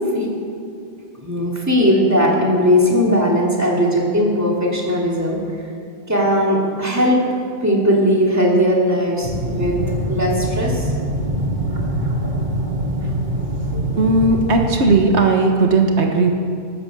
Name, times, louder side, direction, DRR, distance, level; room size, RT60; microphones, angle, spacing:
voice 1, 1.1-5.4 6.1-7.2 7.6-9.8 10.1-10.9 13.7-13.8, equal, 15° right, -3 dB, 2.7 m, -18 dB
sound 1, 9.2-14.7, right 1 dB, 45° right, 2.2 m, -23 dB
voice 2, 13.9-16.3, right 3 dB, 80° right, 3 dB, 1.5 m, -16 dB
15.0 x 13.5 x 6.2 m, 2.5 s
omnidirectional pair, 1.1 m